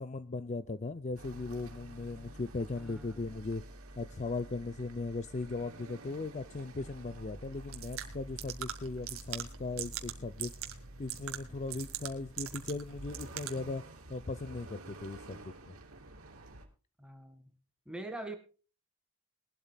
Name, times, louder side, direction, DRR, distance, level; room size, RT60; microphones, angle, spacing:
voice 1, 0.0-3.6 4.0-10.5 11.0-13.8 14.1-15.7, left 3 dB, 35° left, 13 dB, 0.5 m, -38 dB
sound 1, 1.2-16.7, right 1 dB, 85° right, 3.0 m, -50 dB
voice 2, 2.8-3.2 17.0-17.5 17.9-18.4, right 2 dB, 5° right, 6 dB, 1.9 m, -43 dB
sound 2, 7.5-13.7, right 10 dB, 65° right, 1.9 m, -43 dB
22.0 x 12.0 x 2.3 m, 0.35 s
head